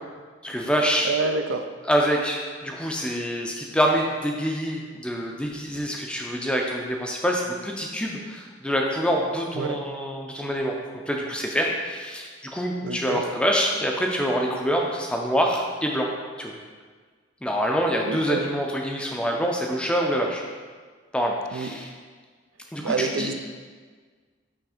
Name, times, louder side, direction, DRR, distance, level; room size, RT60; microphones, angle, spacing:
voice 1, 0.4-1.1 1.9-10.7 11.1-16.1 16.4-16.5 17.4-20.4 21.1-21.9 22.7-23.3, equal, 5° left, 0 dB, 0.5 m, -26 dB
voice 2, 1.0-1.7 9.6-9.8 12.8-13.2 18.1-18.4 21.5-21.7 22.8-23.3, right 4 dB, 80° right, 7 dB, 0.4 m, -27 dB
6.1 x 3.2 x 5.0 m, 1.5 s
head